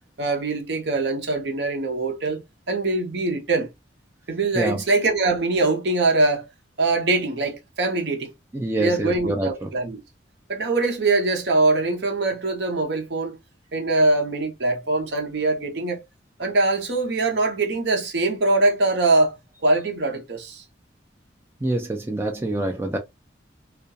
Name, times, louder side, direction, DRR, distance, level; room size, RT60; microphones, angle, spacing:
voice 1, 0.2-3.7 4.3-6.5 6.8-8.3 8.8-10.0 10.5-13.4 13.7-16.0 16.4-19.4 19.6-20.6, right 2 dB, 60° right, 0.7 m, -23 dB
voice 2, 8.5-9.7 21.6-23.0, right 1 dB, 10° right, 0.3 m, -26 dB
2.3 x 2.2 x 2.6 m
head